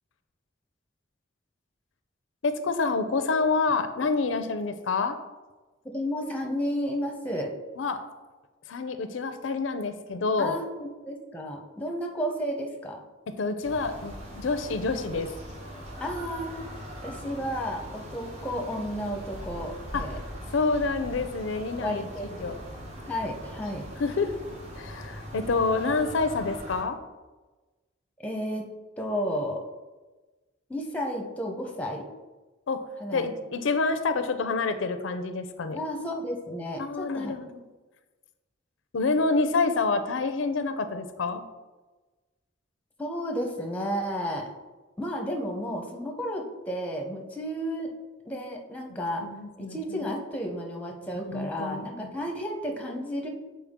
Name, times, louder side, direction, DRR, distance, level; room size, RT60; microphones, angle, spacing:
voice 1, 2.4-5.2 7.8-8.0 8.7-10.6 13.3-15.3 19.9-20.1 20.5-22.1 22.4-22.6 24.0-24.3 24.8-27.0 32.7-32.8 33.1-35.8 36.8-37.6 38.9-41.4 49.2-50.0 51.3-52.1, left 4 dB, 90° left, 9 dB, 0.5 m, -27 dB
voice 2, 5.8-7.5 10.4-13.0 16.0-16.6 17.0-20.2 21.8-22.3 23.1-23.9 28.2-29.6 30.7-32.1 33.0-33.3 35.7-37.3 43.0-44.5 45.0-47.9 48.2-49.3 49.6-53.3, equal, 10° left, 2 dB, 0.7 m, -32 dB
sound 1, 13.6-26.8, equal, 35° right, 1.0 m, -41 dB
7.0 x 4.4 x 3.6 m, 1.2 s
head